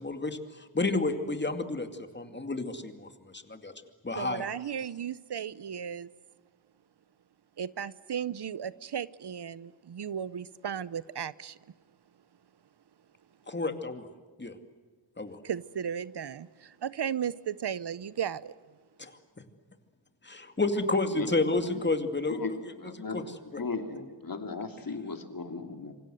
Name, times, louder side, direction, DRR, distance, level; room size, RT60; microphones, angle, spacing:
voice 1, 0.0-3.7 4.0-4.5 13.5-14.1 14.4-14.6 15.2-15.4 19.0-19.2 20.2-23.2 23.5-23.6, left 2 dB, 25° left, 2.4 m, -31 dB
voice 2, 4.2-6.1 7.6-11.6 15.4-18.5, right 8 dB, 60° right, 0.8 m, -35 dB
voice 3, 22.8-23.2 23.5-25.9, left 4 dB, 45° left, 3.0 m, -36 dB
27.0 x 25.5 x 7.9 m
wide cardioid pair, 125°, 46 cm